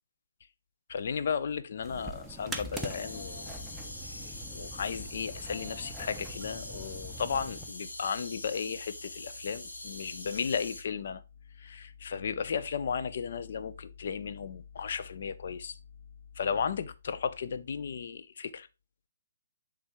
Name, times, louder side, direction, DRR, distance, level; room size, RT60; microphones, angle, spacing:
voice 1, 0.9-4.2 4.5-11.2 11.6-15.8 16.4-18.7, left 6 dB, 50° left, 0.5 m, -35 dB
sound 1, 1.8-7.7, equal, 5° right, 0.7 m, -43 dB
sound 2, 2.7-10.8, left 2 dB, 75° left, 2.0 m, -44 dB
8.7 x 3.4 x 3.5 m
figure-of-eight pair, 135°, 0 cm